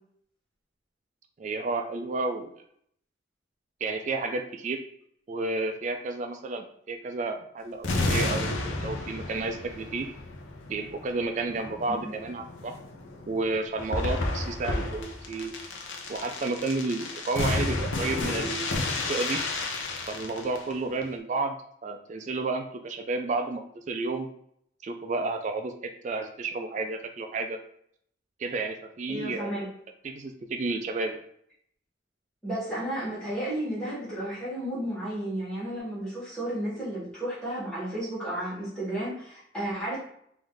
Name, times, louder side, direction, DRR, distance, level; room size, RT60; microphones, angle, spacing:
voice 1, 1.4-2.5 3.8-4.8 5.3-10.1 10.7-12.7 13.3-15.5 16.1-19.4 20.1-21.6 21.8-24.3 24.8-27.6 28.4-29.6 30.0-31.2, right 3 dB, 40° right, 5 dB, 0.3 m, -31 dB
sound 1, 7.8-20.7 21.0-21.1, left 2 dB, 80° left, 0.6 m, -32 dB
voice 2, 29.1-29.7 32.4-40.0, right 1 dB, 5° left, -10 dB, 1.4 m, -33 dB
3.4 x 2.6 x 3.7 m, 0.69 s
head